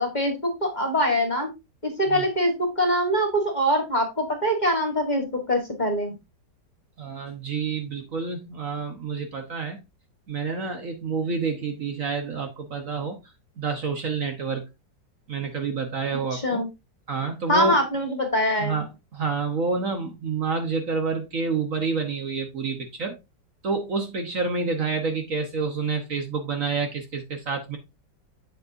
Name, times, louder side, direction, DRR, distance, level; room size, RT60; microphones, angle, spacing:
voice 1, 0.0-1.5 1.8-6.2 16.3-16.7 17.5-18.7, equal, 25° left, 3 dB, 1.7 m, -23 dB
voice 2, 7.0-9.8 10.3-13.2 13.6-14.6 15.3-16.6 17.1-17.7 18.6-23.2 23.6-27.8, right 4 dB, 50° right, 5 dB, 1.4 m, -28 dB
7.9 x 7.4 x 2.6 m, 0.23 s
omnidirectional pair, 1.9 m